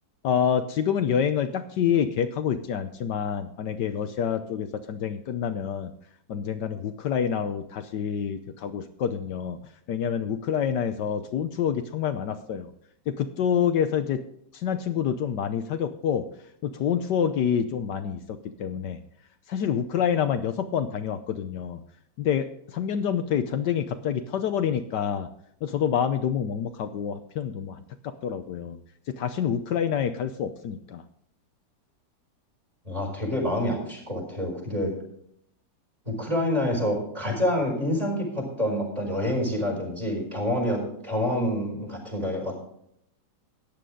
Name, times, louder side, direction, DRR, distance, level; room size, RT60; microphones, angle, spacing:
voice 1, 0.2-5.9 6.3-9.6 9.9-12.7 13.1-14.2 14.5-16.3 16.6-19.0 19.5-21.8 22.2-25.3 25.6-28.8 29.1-31.0, left 8 dB, 70° left, 8 dB, 1.3 m, -27 dB
voice 2, 32.8-35.0 36.0-42.7, left 1 dB, 20° right, 0 dB, 5.1 m, -27 dB
14.5 x 10.5 x 3.8 m, 0.70 s
omnidirectional pair, 2.0 m